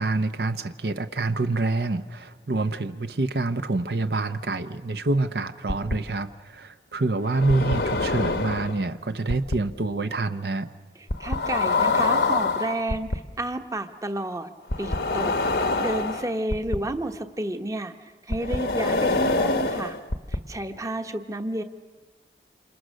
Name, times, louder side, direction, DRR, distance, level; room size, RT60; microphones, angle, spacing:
voice 1, 0.0-10.7, right 2 dB, 65° right, 9 dB, 0.8 m, -26 dB
sound 1, 5.7-5.9 7.2-8.8 9.3-9.6 11.1-13.2 14.7-16.8 18.3-20.4, left 3 dB, 70° left, 1.1 m, -25 dB
voice 2, 11.0-14.5 14.8-15.3 15.8-20.0 20.3-21.6, right 1 dB, 20° right, 7 dB, 1.0 m, -31 dB
27.5 x 27.5 x 6.4 m, 1.4 s
head